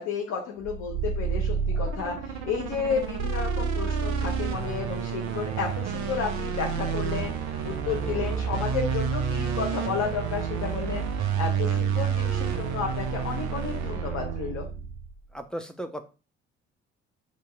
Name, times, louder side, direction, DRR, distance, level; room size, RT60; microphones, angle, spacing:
voice 1, 0.0-14.7, left 6 dB, 50° left, 0 dB, 0.9 m, -32 dB
sound 1, 0.6-15.2, right 6 dB, 55° right, 0.7 m, -29 dB
voice 2, 8.0-8.5 15.3-16.0, equal, ahead, 6 dB, 0.4 m, -37 dB
3.0 x 2.8 x 3.5 m, 0.33 s
figure-of-eight pair, 45°, 34 cm